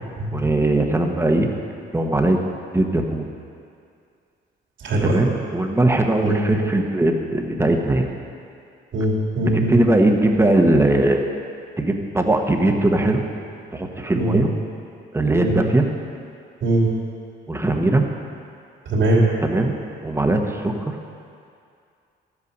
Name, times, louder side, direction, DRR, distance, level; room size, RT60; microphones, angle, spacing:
voice 1, 0.3-1.5 1.9-2.4 2.7-3.3 5.0-8.1 9.4-11.2 11.8-13.2 13.7-14.5 15.1-15.9 17.5-18.1 19.4-20.9, right 1 dB, 10° right, 3 dB, 1.2 m, -20 dB
voice 2, 8.9-9.8 14.1-14.4 15.4-15.6 16.6-16.9 18.9-19.2, right 1 dB, 70° right, -5 dB, 2.7 m, -20 dB
12.0 x 8.6 x 5.4 m, 2.4 s
cardioid pair, 90°, 20 cm